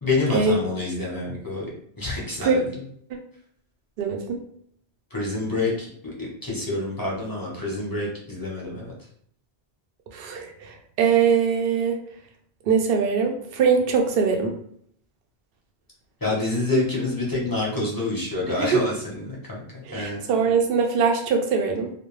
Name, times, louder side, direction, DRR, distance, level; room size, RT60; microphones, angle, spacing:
voice 1, 0.0-1.7 2.0-2.6 5.1-8.9 16.2-20.2, left 2 dB, 25° left, -5 dB, 0.6 m, -27 dB
voice 2, 4.0-4.4 10.1-12.0 12.7-14.6 18.5-18.8 19.9-21.9, right 6 dB, 65° right, 3 dB, 0.7 m, -22 dB
2.4 x 2.1 x 3.0 m, 0.65 s
omnidirectional pair, 1.1 m